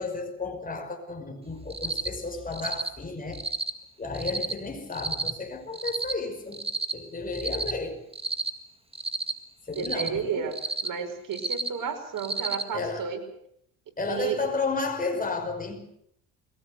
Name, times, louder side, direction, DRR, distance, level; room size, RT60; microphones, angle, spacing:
voice 1, 0.0-3.4 4.0-6.6 6.9-8.0 9.7-10.5 12.7-13.1 14.0-15.8, left 3 dB, 20° left, 5.6 m, -32 dB
Cricket, 1.7-2.1 2.5-2.9 3.3-3.7 4.1-4.5 4.9-5.3 5.7-6.1 6.5-6.9 7.3-7.7 8.1-8.5 8.9-9.3 9.7-10.1 10.5-10.9 11.3-11.7 12.2-12.6, right 3 dB, 15° right, 2.0 m, -30 dB
voice 2, 9.8-10.6 10.8-13.2 14.1-14.4, right 7 dB, 55° right, 5.5 m, -32 dB
21.5 x 18.0 x 8.0 m
supercardioid pair, 70°, 38 cm